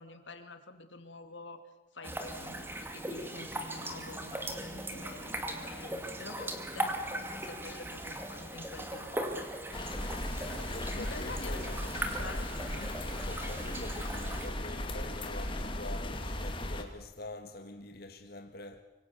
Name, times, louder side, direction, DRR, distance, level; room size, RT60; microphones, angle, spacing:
voice 1, 0.0-1.6 1.9-9.5 10.9-12.9 13.3-13.5, left 2 dB, 85° left, 2.5 m, -48 dB
sound 1, 2.0-14.5, right 1 dB, 10° right, 2.3 m, -39 dB
sound 2, 9.7-16.8, left 1 dB, 25° left, 2.4 m, -37 dB
voice 2, 10.4-11.9 13.3-18.8, left 2 dB, 55° left, 1.6 m, -45 dB
25.5 x 24.5 x 7.1 m
head